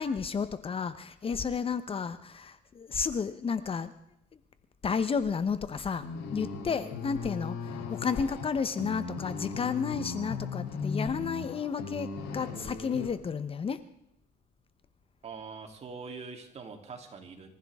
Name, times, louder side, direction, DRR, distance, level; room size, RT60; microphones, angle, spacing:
voice 1, 0.0-3.9 4.8-6.0 6.3-12.1 12.3-13.8, left 6 dB, 35° left, 12 dB, 0.9 m, -32 dB
sound 1, 6.0-13.1, left 5 dB, 85° left, 3.2 m, -37 dB
voice 2, 15.2-17.5, right 4 dB, 40° right, 3 dB, 3.1 m, -43 dB
26.0 x 15.0 x 3.6 m, 0.77 s
cardioid pair, 110°, 17 cm